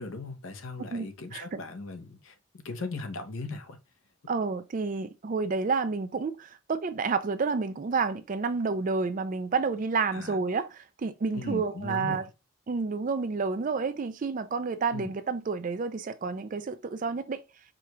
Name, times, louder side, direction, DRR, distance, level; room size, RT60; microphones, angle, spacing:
voice 1, 0.0-2.3 2.6-3.8 10.1-10.4 11.3-12.3 14.9-15.1, left 3 dB, 70° left, 0.7 m, -38 dB
voice 2, 0.9-1.6 4.3-12.2 12.7-17.4, right 4 dB, 40° right, 0.3 m, -30 dB
4.8 x 2.3 x 2.9 m
head